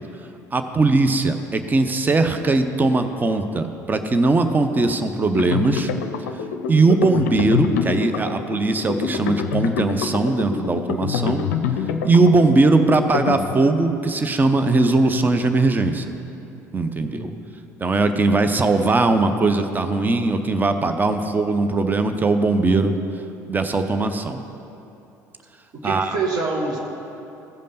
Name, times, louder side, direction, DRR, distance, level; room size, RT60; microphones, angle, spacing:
voice 1, 0.5-5.9 6.7-11.4 12.0-16.0 16.7-17.3 17.8-22.9 23.5-24.4 25.8-26.2, right 3 dB, 20° right, 8 dB, 0.7 m, -19 dB
sound 1, 5.3-13.9, left 7 dB, 70° left, 0.5 m, -26 dB
voice 2, 17.0-17.5 25.8-26.8, right 3 dB, 50° right, 1 dB, 1.7 m, -26 dB
14.5 x 5.2 x 5.7 m, 2.9 s
figure-of-eight pair, 60°, 9 cm